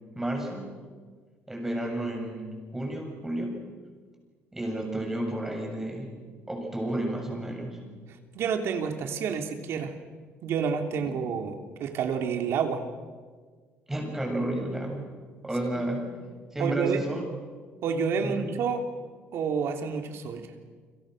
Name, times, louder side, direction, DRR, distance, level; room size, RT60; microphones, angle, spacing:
voice 1, 0.1-0.8 1.5-3.6 4.5-6.1 6.5-7.8 11.0-11.1 13.9-15.1 15.4-16.1 16.5-17.3 18.2-18.5, right 1 dB, 10° right, 1 dB, 7.2 m, -31 dB
voice 2, 8.1-9.9 10.4-12.8 15.7-15.9 16.6-17.0 17.8-18.8 19.3-20.5, right 6 dB, 60° right, 5 dB, 3.2 m, -29 dB
29.5 x 26.0 x 6.6 m, 1.5 s
cardioid pair, 140°, 5 cm